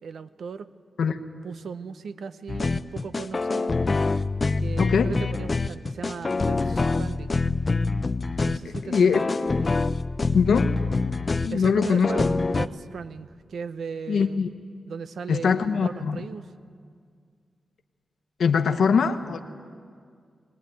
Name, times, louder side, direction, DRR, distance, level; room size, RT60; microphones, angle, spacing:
voice 1, 0.0-0.7 1.4-3.7 4.6-7.4 8.4-9.2 11.5-14.4 14.9-16.5 18.6-18.8, right 5 dB, 80° right, 12 dB, 0.8 m, -37 dB
sound 1, 2.5-12.7, left 3 dB, 35° left, 0.6 m, -25 dB
voice 2, 4.8-5.1 8.8-9.2 10.3-10.7 11.4-12.1 14.1-14.5 15.3-16.2 18.4-19.4, left 6 dB, 80° left, 7 dB, 1.1 m, -22 dB
22.0 x 19.0 x 9.2 m, 2.1 s
wide cardioid pair, 100°, 0 cm